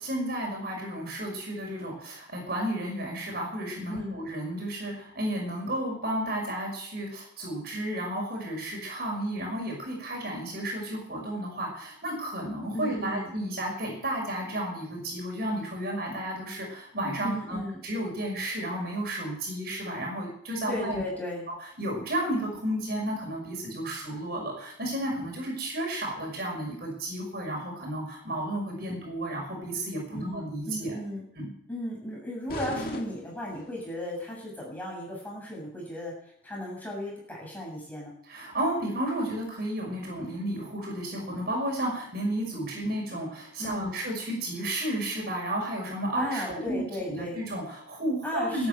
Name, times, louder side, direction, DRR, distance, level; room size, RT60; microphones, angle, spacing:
voice 1, 0.0-21.0 21.8-31.0 31.4-31.5 38.3-48.7, right 1 dB, 55° right, 0 dB, 5.8 m, -32 dB
voice 2, 3.9-4.2 12.7-13.3 17.2-17.8 20.7-21.5 30.1-31.2 31.7-36.2 36.4-38.2 43.6-43.9 46.2-47.4 48.2-48.7, equal, 10° left, -3 dB, 7.3 m, -35 dB
sound 1, 32.5-34.0, left 1 dB, 50° left, 2.2 m, -38 dB
12.5 x 9.7 x 9.0 m, 0.70 s
head